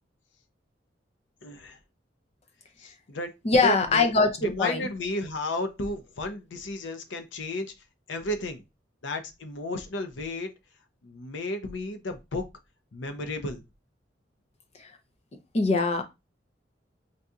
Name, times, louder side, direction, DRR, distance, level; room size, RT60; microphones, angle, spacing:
voice 1, 1.4-1.8 2.8-3.3 3.6-4.1 4.4-7.7 8.1-8.6 9.0-10.5 11.0-12.4 12.9-13.6, left 2 dB, 80° left, 0.6 m, -33 dB
voice 2, 3.4-4.9 14.8-14.9 15.5-16.0, left 3 dB, 35° left, 0.6 m, -22 dB
3.8 x 2.7 x 2.3 m
head